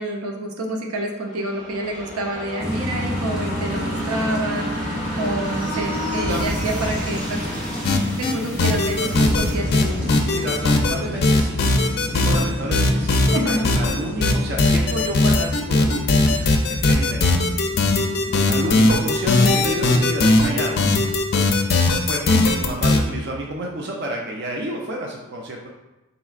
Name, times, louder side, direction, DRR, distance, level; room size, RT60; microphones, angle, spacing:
voice 1, 0.0-7.4 8.2-10.0 13.3-13.6, right 1 dB, 90° right, 1 dB, 0.7 m, -28 dB
sound 1, 1.2-14.7 15.0-15.1, equal, 35° right, 1.5 m, -31 dB
sound 2, 2.6-20.2, equal, 5° right, 0.8 m, -32 dB
sound 3, 7.8-8.3 8.6-9.4 9.7-10.9 11.2-12.4 12.7-13.9 14.2-23.0, left 2 dB, 45° left, 0.4 m, -18 dB
voice 2, 10.3-11.6 12.0-17.4 18.5-20.8 22.0-25.7, right 1 dB, 50° right, -1 dB, 0.5 m, -30 dB
4.4 x 3.9 x 2.4 m, 1.0 s
head